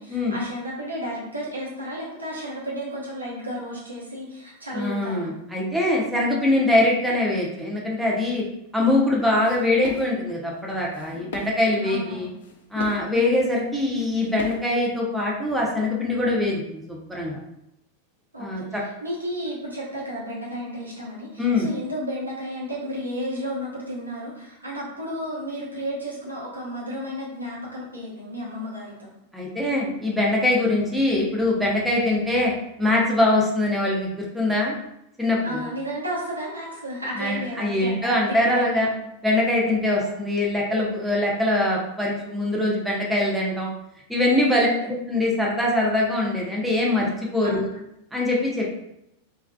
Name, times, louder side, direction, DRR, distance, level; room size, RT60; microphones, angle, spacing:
voice 1, 0.0-5.3 11.8-12.3 13.1-13.4 18.3-29.1 35.4-38.9 40.0-40.3 44.5-44.6 47.4-47.8, equal, 85° right, -5 dB, 0.9 m, -33 dB
voice 2, 4.7-8.4 8.7-12.3 12.7-17.4 18.4-18.8 21.4-21.7 29.3-32.5 32.8-34.7 35.2-35.6 37.2-38.9 39.2-43.7 44.1-47.7 48.1-48.7, left 1 dB, 5° right, -3 dB, 0.6 m, -23 dB
sound 1, 9.4-10.3 10.7-11.6 11.8-11.9 12.4-13.1 13.6-13.7 13.9-14.7, left 4 dB, 60° left, 0.4 m, -37 dB
3.3 x 2.3 x 2.2 m, 0.82 s
figure-of-eight pair, 90°, 0 cm